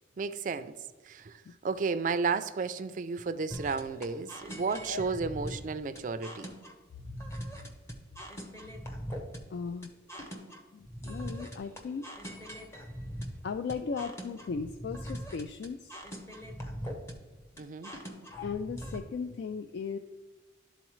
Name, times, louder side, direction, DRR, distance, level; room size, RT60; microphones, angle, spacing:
voice 1, 0.2-0.8 1.0-6.5 17.6-17.9, right 4 dB, 40° right, 0.3 m, -33 dB
sound 1, 3.5-19.0, equal, 15° left, 0.8 m, -42 dB
voice 2, 9.5-9.9 10.7-12.1 13.4-16.0 18.4-20.0, left 5 dB, 65° left, 0.3 m, -37 dB
11.5 x 3.9 x 3.1 m
head